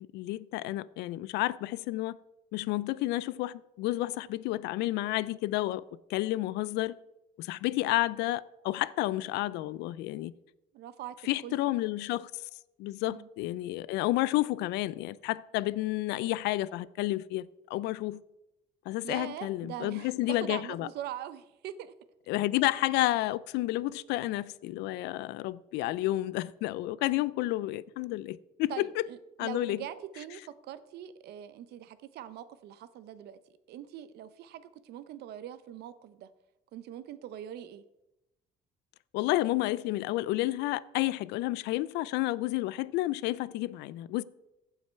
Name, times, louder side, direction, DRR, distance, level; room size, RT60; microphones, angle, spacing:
voice 1, 0.0-2.2 2.5-6.9 7.4-10.3 11.2-12.4 12.8-18.2 18.9-20.9 22.3-28.9 29.4-29.8 39.1-44.2, left 17 dB, 90° left, 0.4 m, -31 dB
voice 2, 10.7-11.5 13.0-13.3 19.0-21.9 28.7-33.4 33.7-36.3 36.7-37.8, right 11 dB, 75° right, 0.8 m, -42 dB
15.5 x 5.8 x 4.5 m
cardioid pair, 110°, 17 cm